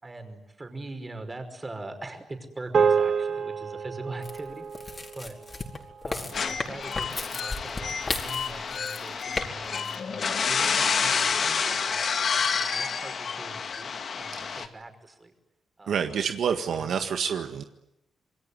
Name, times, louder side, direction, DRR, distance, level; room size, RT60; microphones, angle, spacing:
voice 1, 0.0-4.9 5.2-5.4 6.1-13.9 14.2-15.3 15.8-16.0 16.4-16.9, right 2 dB, 25° right, 7 dB, 5.4 m, -42 dB
sound 1, 2.7-7.3, right 6 dB, 55° right, 1.9 m, -29 dB
sound 2, 4.2-9.5 9.7-10.0, left 3 dB, 30° left, 4.6 m, -34 dB
sound 3, 6.3-14.7, left 6 dB, 55° left, 2.1 m, -29 dB
voice 2, 15.9-17.6, right 7 dB, 75° right, 6 dB, 1.7 m, -28 dB
27.0 x 22.0 x 9.9 m, 0.87 s
cardioid pair, 95°, 0 cm